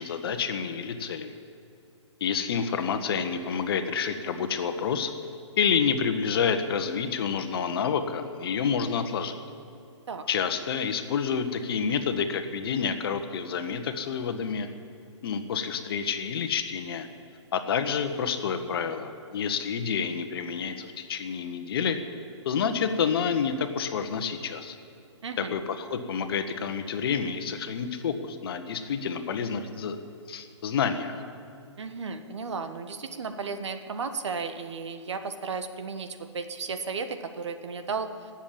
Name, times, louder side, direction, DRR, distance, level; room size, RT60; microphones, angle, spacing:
voice 1, 0.0-1.3 2.2-5.1 5.6-9.4 10.3-14.7 15.2-17.1 17.5-22.0 22.4-24.8 25.4-30.0 30.3-31.2, left 6 dB, 50° left, 8 dB, 1.4 m, -28 dB
voice 2, 25.2-25.5 31.8-38.3, right 5 dB, 65° right, 8 dB, 1.3 m, -34 dB
19.0 x 7.5 x 8.8 m, 2.5 s
hypercardioid pair, 135°, 16 cm